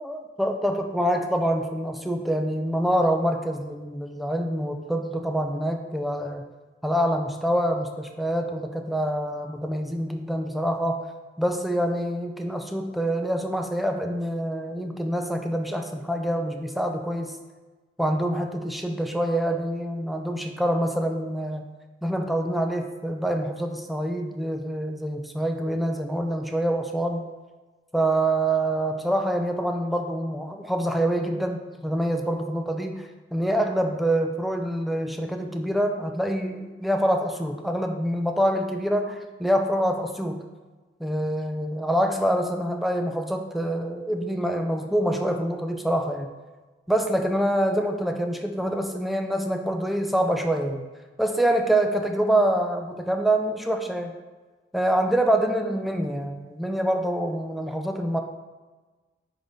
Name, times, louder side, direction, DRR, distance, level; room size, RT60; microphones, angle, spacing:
voice 1, 0.0-6.5 6.8-11.1 11.4-17.4 18.0-21.7 22.0-27.2 27.9-40.4 41.0-46.3 46.9-50.8 51.2-54.1 54.7-58.2, right 1 dB, ahead, 4 dB, 0.4 m, -26 dB
9.1 x 3.9 x 3.5 m, 1.3 s
head